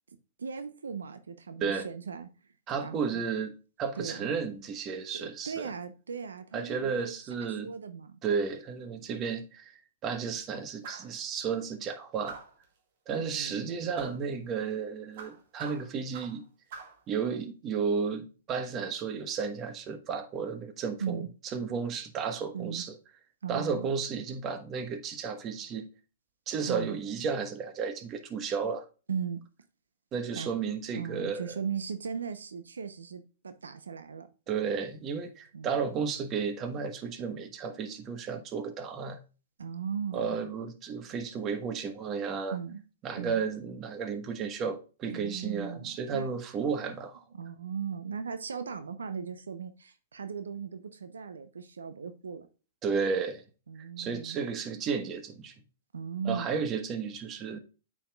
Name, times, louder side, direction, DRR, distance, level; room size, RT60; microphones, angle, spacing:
voice 1, 0.4-2.3 2.8-3.2 4.0-4.3 5.2-8.2 13.1-13.7 21.0-21.3 22.5-22.8 23.4-23.9 26.7-27.0 29.1-29.4 30.3-30.5 30.9-34.3 35.5-35.8 39.6-40.4 42.5-42.8 43.2-43.4 45.1-46.3 47.3-52.5 53.7-54.4 55.9-56.5, right 6 dB, 85° right, 0.7 m, -38 dB
voice 2, 2.7-3.5 3.8-5.7 6.5-7.7 8.2-9.7 10.0-12.4 13.1-16.4 17.1-21.2 21.5-22.9 23.5-25.9 26.5-28.8 30.1-31.5 34.5-39.2 40.1-42.6 43.0-47.2 52.8-53.4 53.8-55.5 56.2-57.6, right 6 dB, 30° right, 1.2 m, -33 dB
sound 1, 10.8-11.2 12.3-12.6 14.0-14.2 15.2-16.4 16.7-17.0, right 5 dB, 55° right, 1.8 m, -44 dB
8.8 x 5.0 x 2.3 m
hypercardioid pair, 120°, 0 cm